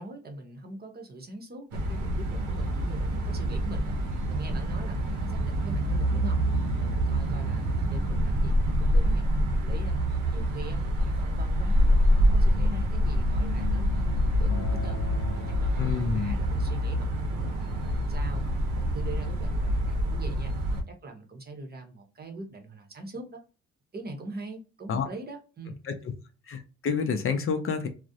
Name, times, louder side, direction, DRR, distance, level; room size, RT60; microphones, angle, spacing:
voice 1, 0.0-4.0 4.2-6.4 6.8-9.9 10.3-15.0 15.3-18.4 18.7-20.5 20.9-23.4 23.9-25.8, right 2 dB, 30° right, 4 dB, 0.7 m, -42 dB
sound 1, 1.7-20.8, equal, 80° right, 0.7 m, -26 dB
Acoustic guitar, 14.5-19.7, left 5 dB, 90° left, 0.7 m, -47 dB
voice 2, 15.8-16.4 24.9-25.1 26.5-27.9, left 6 dB, 45° left, 6 dB, 0.5 m, -28 dB
2.4 x 2.0 x 2.6 m, 0.32 s
cardioid pair, 90°, 30 cm